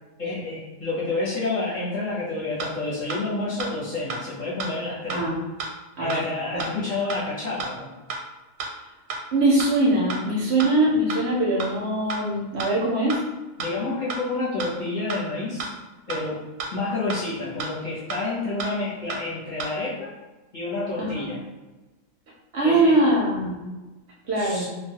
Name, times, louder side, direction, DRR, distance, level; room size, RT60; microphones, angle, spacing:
voice 1, 0.2-5.2 6.0-8.0 13.6-15.7 16.1-16.4 16.7-20.1 20.5-21.4 22.6-23.0 24.4-24.7, left 3 dB, 40° left, -9 dB, 0.8 m, -29 dB
sound 1, 2.6-2.7 3.1-3.2 3.6-3.7 4.1-4.2 4.6-4.7 5.1-5.2 5.6-5.7 6.1-6.2 6.6-6.7 7.1-7.2 7.6-7.7 8.1-8.2 8.6-8.7 9.1-9.2 9.6-9.7 10.1-10.2 10.6-10.7 11.1-11.2 11.6-11.7 12.1-12.2 12.6-12.7 13.1-13.2 13.6-13.7 14.1-14.2 14.6-14.7 15.1-15.2 15.6-15.7 16.1-16.2 16.6-16.7 17.1-17.2 17.6-17.7 18.1-18.2 18.6-18.7 19.1-19.2 19.6-19.7, right 4 dB, 90° right, 1.0 m, -31 dB
voice 2, 9.3-13.2 21.0-21.2 22.5-23.6 24.3-24.7, right 1 dB, 65° right, -4 dB, 0.7 m, -22 dB
2.3 x 2.2 x 2.7 m, 1.1 s
omnidirectional pair, 1.4 m